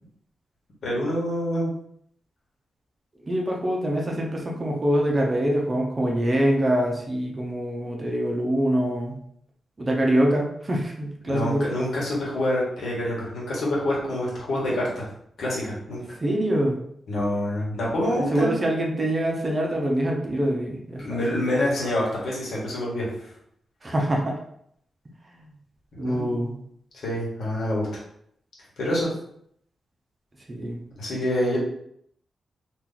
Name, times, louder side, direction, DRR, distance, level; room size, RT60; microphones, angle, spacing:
voice 1, 0.8-1.7 11.3-15.1 15.4-16.2 17.1-18.7 21.0-23.1 25.9-26.4 26.9-27.9 28.8-29.1 31.0-31.6, left 1 dB, 75° left, -5 dB, 1.3 m, -26 dB
voice 2, 3.3-9.2 9.8-11.7 16.2-16.8 18.0-21.2 23.8-24.4 26.0-26.5 30.5-30.8, right 1 dB, 25° right, -1 dB, 0.6 m, -24 dB
2.9 x 2.4 x 3.9 m, 0.69 s
wide cardioid pair, 170°, 0 cm